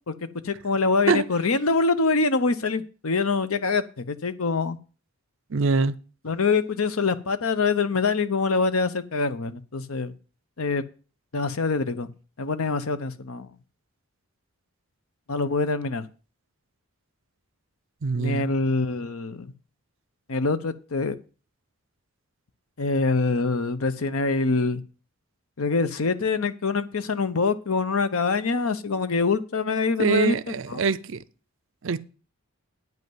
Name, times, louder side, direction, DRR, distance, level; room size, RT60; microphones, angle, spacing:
voice 1, 0.4-4.8 6.2-10.1 10.6-10.8 11.3-12.1 12.4-13.5 15.3-16.0 18.1-19.5 20.3-21.2 22.8-24.8 25.6-30.8, left 4 dB, 75° left, 0.8 m, -25 dB
voice 2, 5.5-5.9 18.0-18.5 30.0-31.2 31.8-32.0, right 4 dB, 60° right, 0.5 m, -23 dB
9.1 x 5.4 x 7.8 m
head